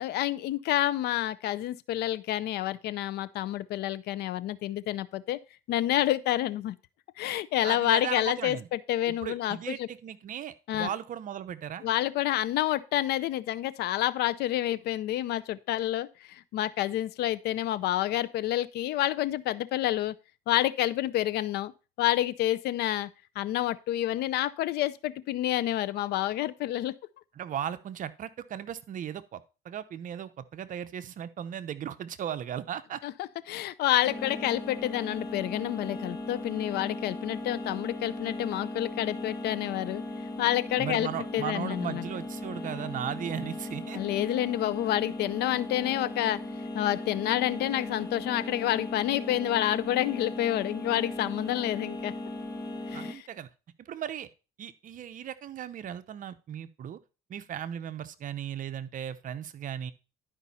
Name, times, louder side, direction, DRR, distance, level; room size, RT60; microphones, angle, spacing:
voice 1, 0.0-5.4 5.7-6.8 7.2-9.9 10.7-10.9 11.8-20.2 20.5-21.7 22.0-23.1 23.4-26.9 33.0-40.0 40.4-42.0 43.9-46.4 46.7-52.1 52.9-53.3, left 13 dB, 75° left, 0.6 m, -29 dB
voice 2, 7.6-8.7 9.1-11.8 27.4-33.0 40.8-44.0 52.9-53.5 53.8-54.3 54.6-57.0 57.3-59.9, right 9 dB, 50° right, 0.8 m, -37 dB
sound 1, 34.0-53.1, left 2 dB, 25° left, 1.5 m, -38 dB
11.5 x 5.2 x 4.2 m
cardioid pair, 110°, 17 cm